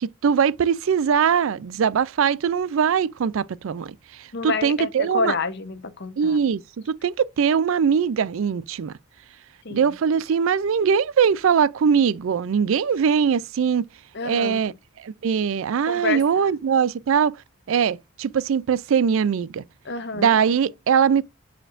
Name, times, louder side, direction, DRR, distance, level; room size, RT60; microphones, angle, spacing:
voice 1, 0.0-5.3 6.2-6.6 6.9-8.9 9.7-13.9 14.2-14.7 15.0-17.4 17.7-19.6 20.1-21.2, right 7 dB, 65° right, 0.4 m, -21 dB
voice 2, 4.3-6.4 9.6-9.9 14.1-14.6 15.9-16.5 19.8-20.4, left 4 dB, 50° left, 0.8 m, -28 dB
8.8 x 4.4 x 2.5 m
head